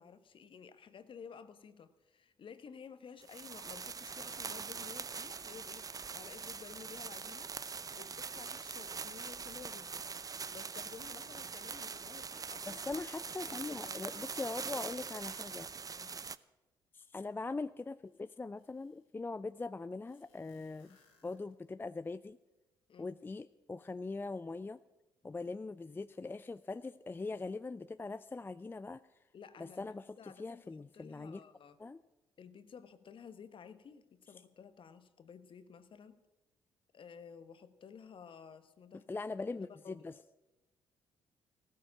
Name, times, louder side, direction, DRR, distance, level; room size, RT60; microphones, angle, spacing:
voice 1, 0.0-10.1 10.5-14.1 15.9-16.2 22.9-23.2 29.3-29.9 30.2-30.6 30.9-31.8 32.4-36.2 36.9-39.1 39.5-40.2, left 6 dB, 45° left, 12 dB, 1.2 m, -53 dB
sound 1, 3.2-16.4, right 5 dB, 30° right, 0.6 m, -43 dB
voice 2, 12.7-15.7 16.9-21.0 21.2-22.4 23.0-24.8 25.2-29.0 29.6-31.4 31.8-32.0 39.1-40.1, left 3 dB, 15° left, 14 dB, 0.4 m, -41 dB
sound 2, 17.5-17.6 18.0-19.2 20.1-21.9, left 4 dB, 80° left, 3.0 m, -70 dB
16.0 x 14.0 x 5.9 m, 1.0 s
figure-of-eight pair, 45°, 12 cm